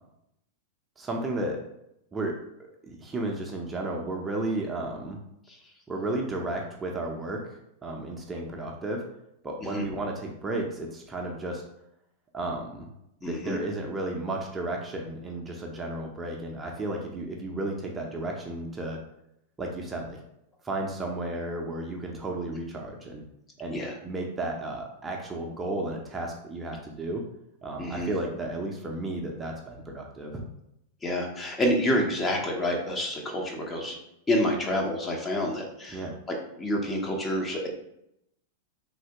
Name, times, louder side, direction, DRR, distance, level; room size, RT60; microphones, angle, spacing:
voice 1, 1.0-1.6 2.1-2.3 2.6-5.2 5.9-9.0 9.4-11.6 12.3-12.9 13.3-19.0 19.6-20.2 20.6-23.2 23.6-27.2 27.6-30.4 35.9-36.1, right 2 dB, 20° right, 0 dB, 0.5 m, -33 dB
voice 2, 13.2-13.6 23.7-23.9 27.8-28.1 31.0-34.0 34.3-36.0 36.6-37.7, left 1 dB, 20° left, 1 dB, 0.7 m, -28 dB
3.2 x 2.7 x 2.8 m, 0.80 s
hypercardioid pair, 110°, 0 cm